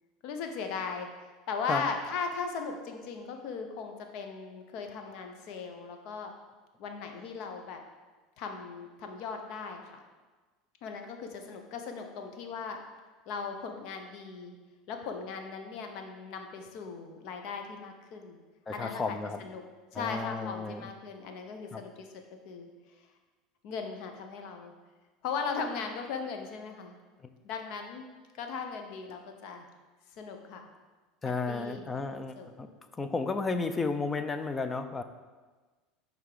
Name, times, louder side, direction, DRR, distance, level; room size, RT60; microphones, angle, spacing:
voice 1, 0.2-1.1 1.5-6.3 6.8-7.8 8.4-10.0 10.8-12.8 13.3-14.6 14.9-18.4 18.7-19.6 19.9-22.1 22.4-22.7 23.6-24.7 25.2-27.0 27.4-28.1 28.3-29.6 30.2-30.7 31.5-32.5 33.5-33.9, left 5 dB, 60° left, 5 dB, 0.8 m, -38 dB
voice 2, 18.7-19.4 19.9-20.9 21.7-21.8 31.2-32.7 33.0-35.0, left 4 dB, 20° left, 10 dB, 0.4 m, -33 dB
5.7 x 3.5 x 4.9 m, 1.3 s
supercardioid pair, 115°, 0 cm